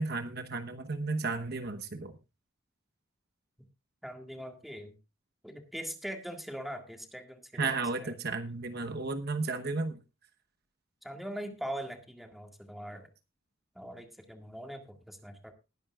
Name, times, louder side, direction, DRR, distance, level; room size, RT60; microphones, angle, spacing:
voice 1, 0.0-2.2 7.5-10.0, right 3 dB, 55° right, 8 dB, 1.1 m, -33 dB
voice 2, 4.0-5.0 5.4-8.1 11.0-13.1 13.8-15.5, equal, ahead, 5 dB, 1.9 m, -42 dB
20.0 x 10.5 x 2.4 m, 0.27 s
head